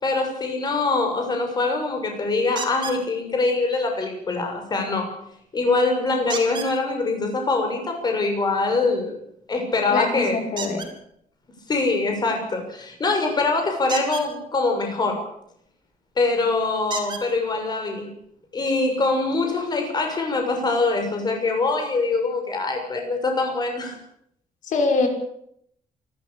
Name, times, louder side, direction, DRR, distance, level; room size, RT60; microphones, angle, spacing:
voice 1, 0.0-5.1 5.5-9.2 9.5-10.4 11.7-15.3 16.2-18.1 18.5-24.0, left 3 dB, 30° left, 3 dB, 6.5 m, -23 dB
sound 1, 2.6-3.0 6.3-6.7 10.5-10.9 13.8-14.3 15.9-16.0 16.9-17.2 18.2-18.3 18.8-18.9, right 4 dB, 30° right, 4.4 m, -32 dB
voice 2, 9.9-10.8 24.6-25.1, left 3 dB, 65° left, 4 dB, 6.0 m, -23 dB
28.0 x 13.0 x 8.7 m, 0.72 s
cardioid pair, 170°, 14 cm